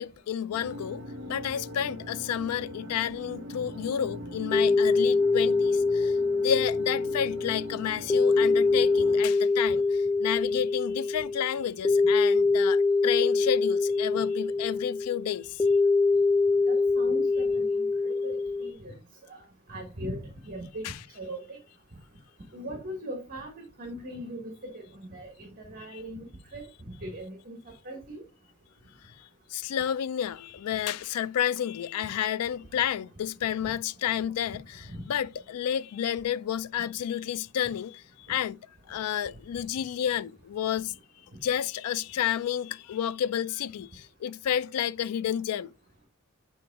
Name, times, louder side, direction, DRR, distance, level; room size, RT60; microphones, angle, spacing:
voice 1, 0.0-9.8 10.2-15.6 20.8-20.9 29.5-38.6 38.9-41.0 41.4-45.7, left 9 dB, 90° left, 0.3 m, -30 dB
sound 1, 0.5-9.2, equal, 60° right, 1.1 m, -41 dB
sound 2, 4.5-18.7, left 3 dB, 10° left, 0.4 m, -24 dB
voice 2, 16.7-18.9 19.3-19.4 19.7-20.8 21.2-21.6 22.5-27.6 27.8-28.2 33.6-33.7 34.9-35.0, right 1 dB, 40° right, 1.4 m, -40 dB
7.8 x 3.8 x 3.5 m
head